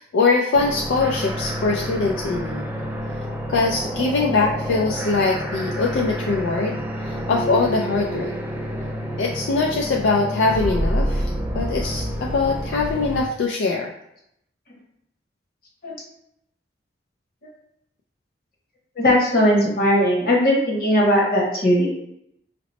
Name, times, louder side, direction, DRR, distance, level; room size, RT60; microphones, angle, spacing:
voice 1, 0.0-2.7 3.5-8.3 9.2-11.3 11.5-13.9, left 3 dB, 80° left, -1 dB, 0.3 m, -22 dB
sound 1, 0.5-13.2, equal, 10° right, 0.3 m, -28 dB
voice 2, 19.0-21.9, equal, 55° left, -3 dB, 1.0 m, -18 dB
2.8 x 2.0 x 4.0 m, 0.78 s
head